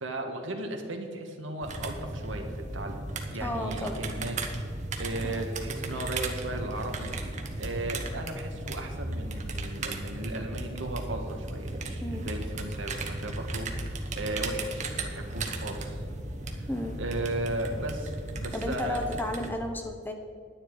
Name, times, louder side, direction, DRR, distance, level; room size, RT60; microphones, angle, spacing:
voice 1, 0.0-2.5 2.7-3.0 3.3-4.4 5.0-7.1 7.6-16.0 16.6-16.7 17.0-19.0, right 1 dB, 80° right, 4 dB, 1.4 m, -36 dB
sound 1, 1.6-19.5, right 2 dB, 40° right, 1.0 m, -35 dB
voice 2, 3.4-4.0 5.2-5.5 12.0-12.3 16.7-17.0 18.5-20.1, left 1 dB, 10° left, 4 dB, 0.9 m, -33 dB
10.5 x 9.8 x 4.7 m, 2.1 s
head